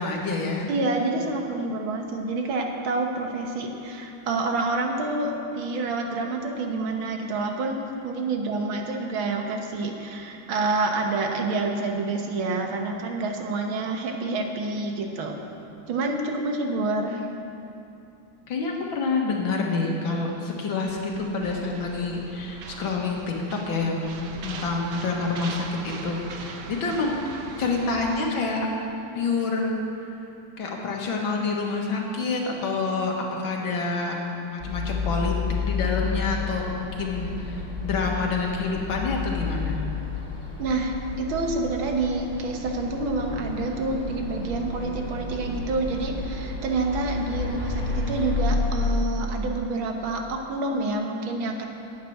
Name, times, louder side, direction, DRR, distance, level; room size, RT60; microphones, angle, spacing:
voice 1, 0.0-0.7 18.5-27.2 27.6-28.7 29.1-30.1 30.6-34.2 34.5-35.3 35.6-39.8, left 3 dB, 75° left, 0 dB, 2.3 m, -27 dB
voice 2, 0.7-7.8 8.0-15.4 15.9-17.3 40.6-51.7, right 2 dB, 80° right, 3 dB, 2.0 m, -28 dB
sound 1, 20.8-28.2, right 5 dB, 65° right, 1.3 m, -40 dB
sound 2, 34.6-48.9, left 4 dB, 30° left, 3.6 m, -31 dB
11.0 x 7.5 x 9.1 m, 2.8 s
omnidirectional pair, 2.2 m